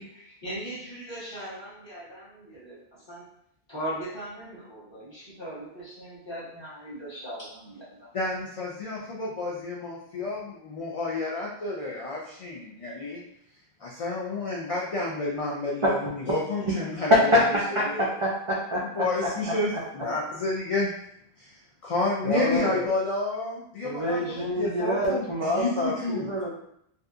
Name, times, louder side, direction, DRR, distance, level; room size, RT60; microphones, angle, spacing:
voice 1, 0.0-2.8 3.1-3.3 3.7-8.1, right 1 dB, 30° left, -8 dB, 0.9 m, -39 dB
voice 2, 8.1-13.2 13.8-17.3 17.7-18.1 18.8-20.9 21.4-21.6 21.8-26.3, left 3 dB, 60° left, -4 dB, 0.3 m, -30 dB
voice 3, 17.1-17.4 17.8-18.8 19.7-19.8 22.2-22.9 23.8-26.5, left 1 dB, 55° right, -4 dB, 0.3 m, -25 dB
2.7 x 2.3 x 2.3 m, 0.72 s
omnidirectional pair, 1.1 m